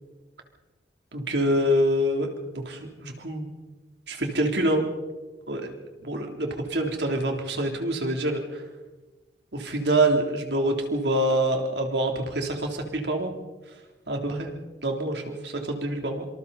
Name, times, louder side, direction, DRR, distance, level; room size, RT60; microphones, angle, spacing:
voice 1, 1.1-2.3 2.5-3.6 4.1-4.9 5.5-8.6 9.5-13.3 14.1-14.5 14.8-16.3, right 1 dB, 75° right, 3 dB, 3.4 m, -26 dB
26.5 x 25.5 x 4.2 m, 1.2 s
head